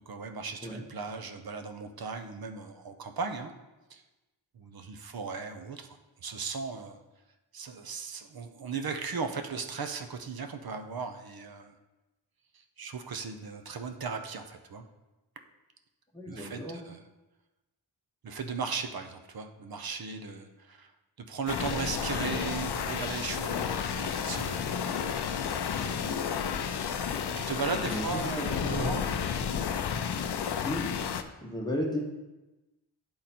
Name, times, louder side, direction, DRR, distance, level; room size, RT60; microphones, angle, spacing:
voice 1, 0.1-3.5 3.9-4.0 4.5-7.0 7.5-11.7 12.5-14.8 16.3-17.0 18.2-20.9 21.2-24.9 27.3-29.0, right 5 dB, 50° right, 6 dB, 0.7 m, -37 dB
voice 2, 16.1-16.8 26.0-26.1 27.9-29.1 30.6-30.8 31.4-32.0, left 1 dB, 10° left, -2 dB, 1.0 m, -34 dB
sound 1, 21.5-31.2, left 7 dB, 60° left, 0.5 m, -32 dB
10.0 x 3.8 x 4.3 m, 1.1 s
wide cardioid pair, 150°, 45 cm